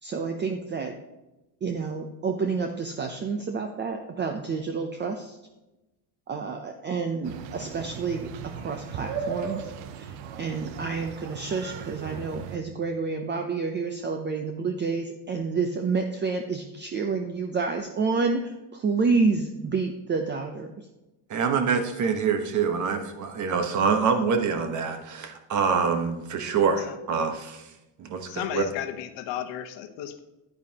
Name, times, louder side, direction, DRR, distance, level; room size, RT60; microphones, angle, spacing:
voice 1, 0.0-0.9 1.6-5.4 6.3-20.9, right 4 dB, 25° right, 5 dB, 0.6 m, -29 dB
sound 1, 7.2-12.6, right 6 dB, 80° right, 0.9 m, -37 dB
voice 2, 21.3-27.7 28.0-28.7, right 5 dB, 40° right, 6 dB, 1.2 m, -25 dB
voice 3, 28.3-30.2, left 11 dB, 85° left, 8 dB, 1.0 m, -33 dB
10.0 x 9.5 x 2.9 m, 0.99 s
cardioid pair, 155°, 43 cm